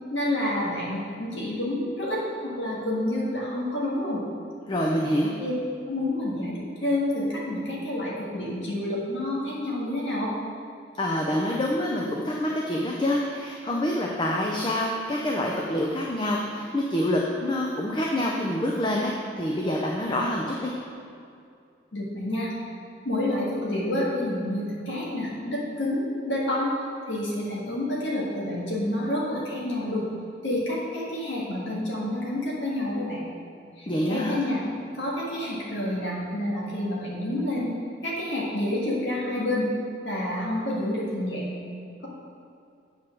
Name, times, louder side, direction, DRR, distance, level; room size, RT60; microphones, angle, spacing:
voice 1, 0.1-4.2 5.4-5.5 5.9-10.3 21.9-22.5 23.0-26.7 27.1-30.1 30.4-33.2 33.8-34.6 34.9-37.7 38.0-39.7 40.0-41.5, left 1 dB, 85° left, -6 dB, 1.8 m, -28 dB
voice 2, 4.7-5.3 11.0-20.7 33.9-34.4, left 1 dB, 25° left, -1 dB, 0.5 m, -26 dB
8.1 x 4.4 x 6.1 m, 2.4 s
head